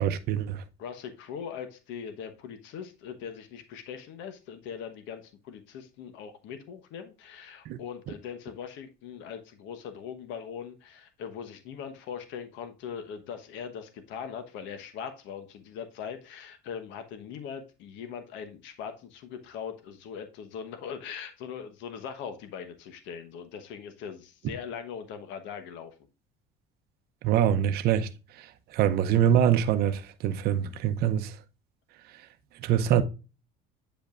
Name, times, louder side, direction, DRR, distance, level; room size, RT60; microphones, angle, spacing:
voice 1, 0.0-0.6 7.7-7.8 27.2-28.1 28.4-28.5 28.7-31.3 32.6-33.0, right 10 dB, 50° right, 0.7 m, -24 dB
voice 2, 0.8-25.9, left 7 dB, 65° left, 1.1 m, -40 dB
8.8 x 5.2 x 2.4 m
cardioid pair, 165°, 21 cm